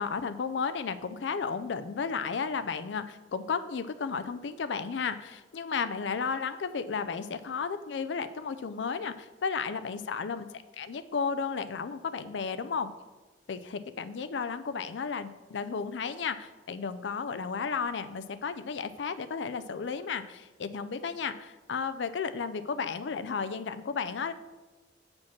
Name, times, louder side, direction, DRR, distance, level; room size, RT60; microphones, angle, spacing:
voice 1, 0.0-10.5 10.8-12.9 13.5-24.3, left 5 dB, 70° left, 11 dB, 0.5 m, -33 dB
7.1 x 5.2 x 6.0 m, 1.2 s
head